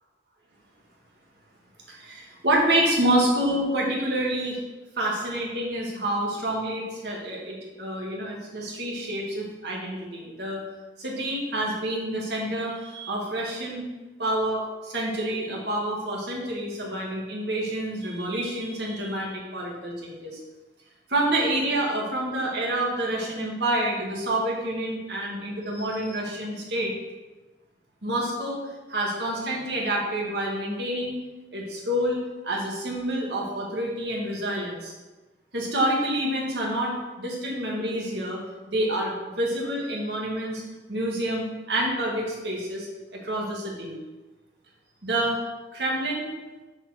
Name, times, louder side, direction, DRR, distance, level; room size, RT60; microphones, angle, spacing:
voice 1, 1.9-4.6 5.0-10.7 11.0-13.9 14.2-20.4 21.1-26.9 28.0-28.6 28.9-31.2 31.5-34.9 35.5-38.4 38.7-40.6 40.9-43.9 45.0-45.4 45.7-46.3, right 1 dB, 70° right, -2 dB, 1.9 m, -28 dB
6.5 x 4.2 x 6.3 m, 1.2 s
head